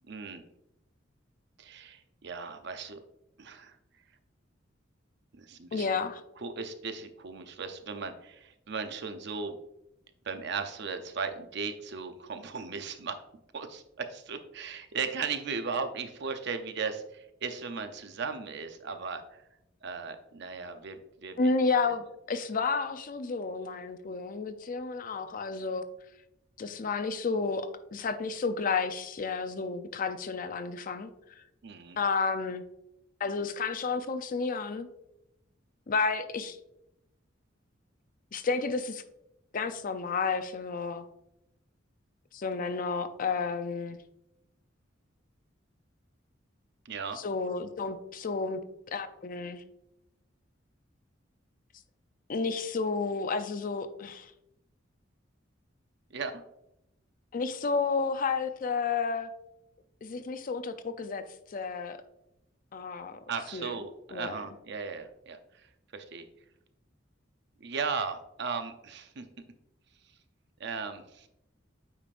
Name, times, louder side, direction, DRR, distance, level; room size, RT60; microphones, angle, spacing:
voice 1, 0.1-0.4 1.6-3.0 3.4-3.8 5.3-5.9 6.4-9.6 10.2-13.2 13.5-19.2 19.8-21.4 31.6-32.0 46.9-47.2 56.1-56.4 63.3-65.4 65.9-66.2 67.6-69.2 70.6-71.3, right 5 dB, 60° right, 8 dB, 0.6 m, -37 dB
voice 2, 5.7-6.2 21.4-25.9 26.6-31.4 32.0-32.6 33.2-34.9 35.9-36.6 38.3-39.0 39.5-41.1 42.3-44.0 47.1-48.6 48.9-49.6 52.3-54.3 57.3-59.3 60.0-62.0 62.7-63.2 63.5-63.8 64.1-64.4, left 4 dB, 45° left, 10 dB, 0.5 m, -31 dB
8.6 x 5.1 x 2.5 m, 0.85 s
head